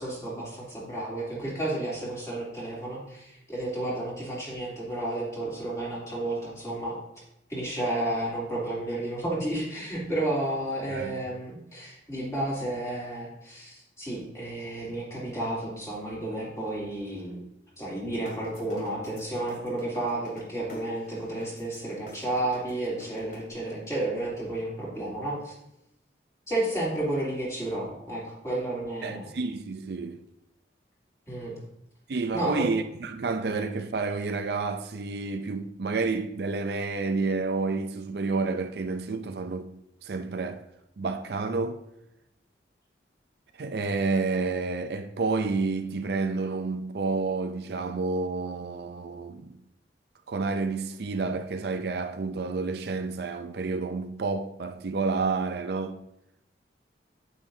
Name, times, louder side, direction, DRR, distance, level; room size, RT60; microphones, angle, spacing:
voice 1, 0.0-7.0 7.5-17.4 17.8-25.5 26.5-29.3 31.3-31.5 32.3-32.7, right 1 dB, 15° left, 3.0 m, -32 dB
sound 1, 18.1-23.4, left 1 dB, 50° left, 2.4 m, -45 dB
voice 2, 29.0-30.2 32.1-39.7 40.0-40.6 41.0-41.8 43.6-49.6 50.3-56.0, right 4 dB, 60° right, 0.5 m, -30 dB
8.9 x 8.8 x 2.7 m
head